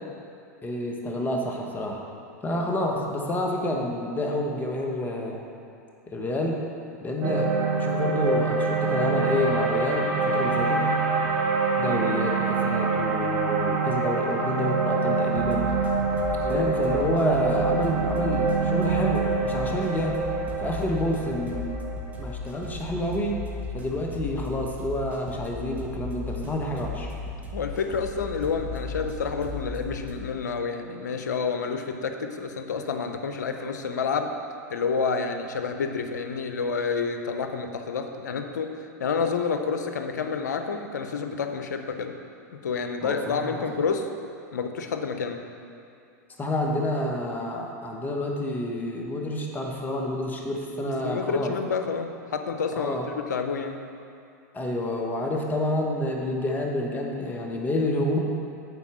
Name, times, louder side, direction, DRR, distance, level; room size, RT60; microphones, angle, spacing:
voice 1, 0.6-2.0 2.4-5.4 6.1-6.6 7.0-7.5 7.8-10.8 11.8-15.7 16.5-20.1 20.6-21.8 22.2-23.4 23.7-27.1 43.0-43.5 46.4-51.5 52.7-53.0 54.5-58.2, left 1 dB, 20° left, 0 dB, 1.2 m, -28 dB
sound 1, 7.2-23.5, right 4 dB, 55° right, 1.3 m, -26 dB
sound 2, 15.3-30.1, left 3 dB, 15° right, 1.1 m, -36 dB
voice 2, 16.2-16.7 27.5-34.3 34.7-38.7 39.0-42.1 42.6-44.1 44.5-45.4 50.8-53.8, left 5 dB, 85° left, 6 dB, 0.6 m, -29 dB
8.3 x 4.3 x 6.2 m, 2.5 s
hypercardioid pair, 105°, 9 cm